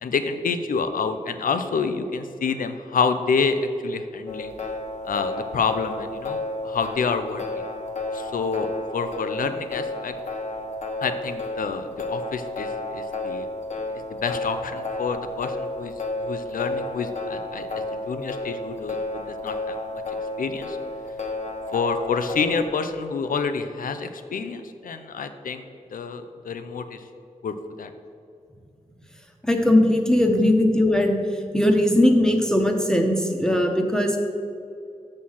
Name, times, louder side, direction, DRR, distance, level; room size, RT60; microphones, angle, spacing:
voice 1, 0.0-4.5 5.0-7.5 8.1-8.7 8.9-10.1 11.0-13.5 14.2-15.9 16.2-19.8 20.1-20.8 21.7-25.6 25.9-27.0 27.4-27.9 30.3-30.5, left 5 dB, 80° left, 9 dB, 0.6 m, -28 dB
sound 1, 4.3-22.7, left 2 dB, 60° left, 1.2 m, -32 dB
voice 2, 29.4-31.2 31.5-34.2, left 1 dB, 5° left, 2 dB, 1.2 m, -19 dB
6.5 x 6.2 x 5.6 m, 2.5 s
cardioid pair, 50°, 14 cm